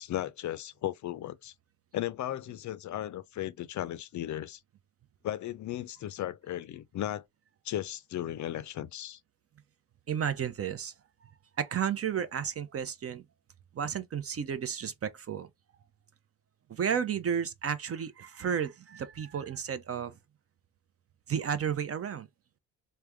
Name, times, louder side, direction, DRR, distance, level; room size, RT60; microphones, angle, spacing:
voice 1, 0.0-1.5 1.9-4.6 5.2-7.2 7.6-9.2, left 12 dB, 50° left, 0.5 m, -36 dB
voice 2, 10.1-10.9 11.6-13.2 13.7-15.5 16.7-20.2 21.3-22.3, right 8 dB, 35° right, 0.6 m, -32 dB
3.4 x 2.2 x 3.3 m
hypercardioid pair, 55°, 39 cm